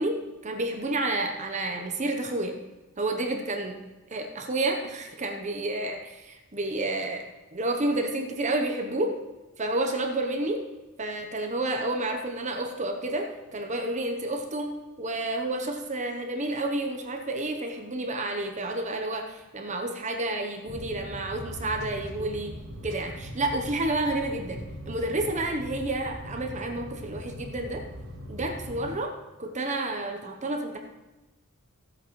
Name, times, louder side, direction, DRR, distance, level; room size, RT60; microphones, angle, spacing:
voice 1, 0.0-2.6 3.0-3.8 4.1-7.2 7.5-9.2 9.6-10.6 11.0-27.8 28.3-29.1 29.4-30.8, right 2 dB, 35° right, 3 dB, 0.9 m, -30 dB
sound 1, 20.7-29.0, equal, 85° right, 3.9 m, -40 dB
15.0 x 8.4 x 3.2 m, 1.1 s
head